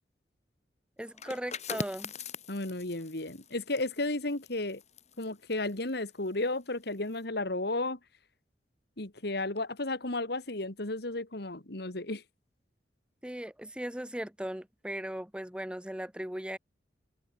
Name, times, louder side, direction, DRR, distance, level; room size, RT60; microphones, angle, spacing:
voice 1, 1.0-2.1 13.2-16.6, right 1 dB, 5° right, 1.0 m, -38 dB
sound 1, 1.1-6.6 6.9-7.2, left 4 dB, 40° left, 7.2 m, -43 dB
voice 2, 2.5-4.8 5.2-8.0 9.0-12.2, left 2 dB, 65° left, 2.5 m, -33 dB
head